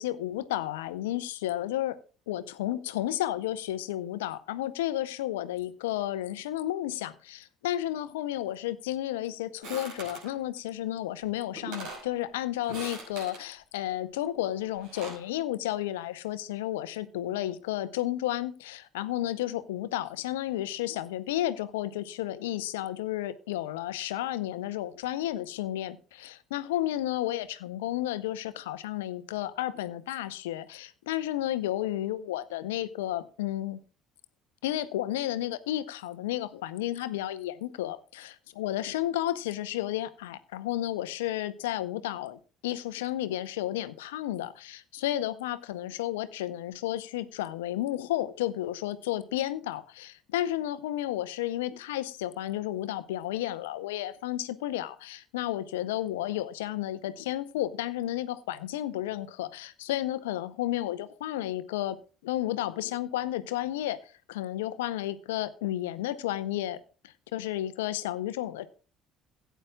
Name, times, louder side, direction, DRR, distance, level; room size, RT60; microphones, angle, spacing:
voice 1, 0.0-2.0 2.3-33.8 34.6-62.0 62.2-64.0 64.3-68.7, left 13 dB, 75° left, 14 dB, 0.7 m, -32 dB
sound 1, 9.6-10.3 11.2-11.3 11.6-12.1 12.6-13.4 14.6-15.3, right 2 dB, 70° right, 5.7 m, -41 dB
16.5 x 9.2 x 2.3 m, 0.37 s
hypercardioid pair, 55°, 0 cm